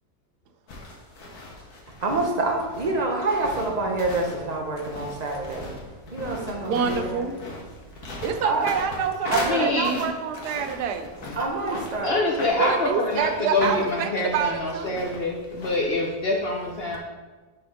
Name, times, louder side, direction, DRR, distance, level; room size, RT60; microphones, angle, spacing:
sound 1, 0.7-16.1, left 2 dB, 70° left, 1.7 m, -38 dB
voice 1, 2.0-5.7 6.1-7.0 8.4-8.6 9.3-9.7 11.4-12.2, right 2 dB, 35° right, 1 dB, 0.7 m, -26 dB
voice 2, 6.6-7.3 8.2-11.1 12.6-15.3, right 7 dB, 90° right, 7 dB, 1.2 m, -27 dB
voice 3, 9.3-10.0 12.0-17.0, left 2 dB, 55° left, 0 dB, 0.7 m, -25 dB
5.5 x 4.5 x 5.1 m, 1.3 s
omnidirectional pair, 1.7 m